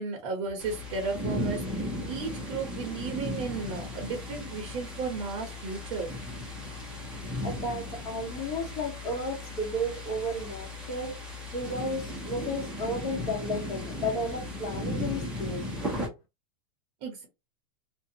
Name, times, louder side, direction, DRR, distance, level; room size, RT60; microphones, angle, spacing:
voice 1, 0.0-6.1 17.0-17.3, right 4 dB, 40° right, 0.9 m, -34 dB
sound 1, 0.6-16.1, left 1 dB, 5° right, 0.8 m, -36 dB
voice 2, 7.4-11.2 11.5-15.7, equal, 40° left, 1.3 m, -33 dB
2.5 x 2.3 x 2.8 m
supercardioid pair, 155°, 18 cm